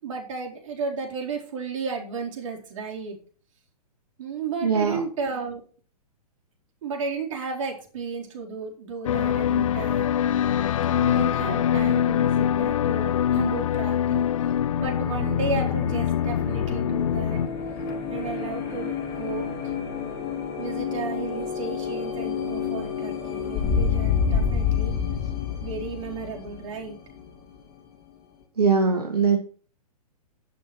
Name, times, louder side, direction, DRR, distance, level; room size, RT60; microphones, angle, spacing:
voice 1, 0.0-3.2 4.2-5.6 6.8-10.1 10.9-14.2 14.8-17.4 18.1-19.4 20.6-24.9 25.6-27.0, right 4 dB, 50° right, 0 dB, 4.3 m, -33 dB
voice 2, 4.6-5.0 28.6-29.4, right 5 dB, 75° right, 1 dB, 2.2 m, -21 dB
sound 1, 9.0-17.5, left 9 dB, 55° left, 0.5 m, -24 dB
sound 2, 14.3-27.8, left 6 dB, 40° left, 4.4 m, -29 dB
11.0 x 7.3 x 6.1 m, 0.41 s
figure-of-eight pair, 120°, 20 cm